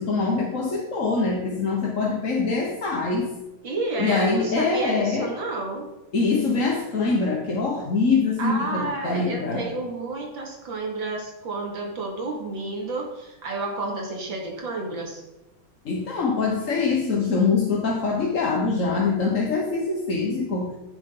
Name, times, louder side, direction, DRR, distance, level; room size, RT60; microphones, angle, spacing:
voice 1, 0.0-3.3 4.0-5.3 6.1-9.7 15.8-20.8, left 4 dB, 45° left, 0 dB, 1.5 m, -24 dB
voice 2, 3.6-5.9 8.4-15.2, right 3 dB, 70° right, 0 dB, 3.0 m, -30 dB
15.5 x 7.0 x 3.9 m, 1.0 s
omnidirectional pair, 2.2 m